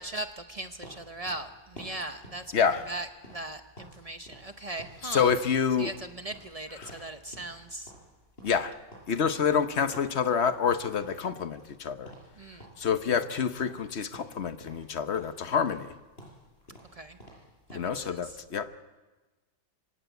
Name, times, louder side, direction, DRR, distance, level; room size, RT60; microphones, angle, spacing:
voice 1, 0.0-5.3 5.8-7.9 8.5-8.6 12.4-12.7 16.9-17.2 17.7-18.4, right 2 dB, 65° right, 7 dB, 0.3 m, -39 dB
sound 1, 0.8-4.0 4.3-4.5 4.8-7.1 7.3-7.6 7.9-10.7 11.0-11.8 12.1-12.3 12.6-13.9 14.1-14.9 15.1-17.9, equal, 30° left, 7.0 m, -50 dB
voice 2, 2.5-2.9 5.0-5.9 6.7-7.0 8.4-8.7 9.1-12.1 12.8-15.9 17.7-18.7, left 7 dB, 45° left, 10 dB, 0.9 m, -27 dB
25.0 x 17.5 x 8.2 m, 1.2 s
omnidirectional pair, 2.1 m